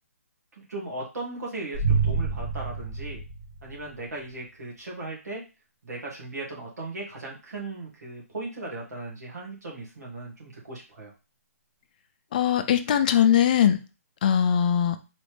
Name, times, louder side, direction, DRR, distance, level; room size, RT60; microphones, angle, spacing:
voice 1, 0.5-3.2 3.6-5.4 5.8-11.1, right 2 dB, 85° right, -3 dB, 2.1 m, -37 dB
sound 1, 1.7-4.0, right 5 dB, 40° right, 1.1 m, -27 dB
voice 2, 12.3-13.8 14.2-15.0, left 9 dB, 30° left, 9 dB, 0.4 m, -21 dB
4.1 x 3.0 x 3.2 m, 0.30 s
hypercardioid pair, 160°, 9 cm